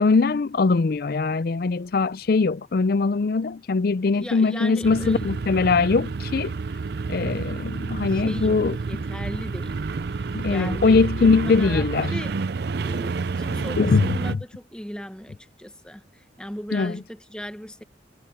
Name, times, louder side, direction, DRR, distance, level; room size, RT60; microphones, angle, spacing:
voice 1, 0.0-6.5 7.1-9.0 10.3-12.1 13.8-14.4 16.7-16.9, left 4 dB, 50° left, 0.4 m, -21 dB
voice 2, 4.1-5.4 7.9-8.6 8.9-9.8 10.1-12.3 12.7-17.8, equal, 5° left, 0.8 m, -38 dB
sound 1, 4.8-14.4, right 4 dB, 55° right, 0.5 m, -29 dB
head